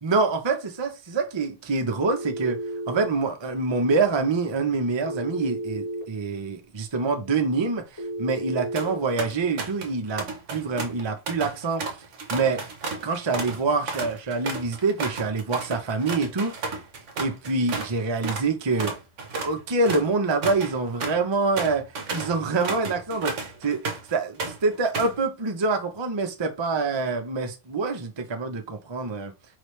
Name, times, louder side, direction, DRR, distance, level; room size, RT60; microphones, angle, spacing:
voice 1, 0.0-2.6 2.9-11.8 12.3-12.6 13.0-16.7 17.2-19.0 19.4-21.8 22.1-29.3, right 3 dB, 30° right, 0.5 m, -26 dB
Telephone, 2.1-3.1 5.0-6.1 8.0-9.0, right 1 dB, 10° left, 1.5 m, -32 dB
sound 1, 8.5-8.9 9.2-9.9 10.2-17.9 18.2-18.5 18.8-24.1 24.4-25.2, right 4 dB, 50° right, 1.2 m, -33 dB
4.9 x 3.3 x 3.2 m
omnidirectional pair, 1.7 m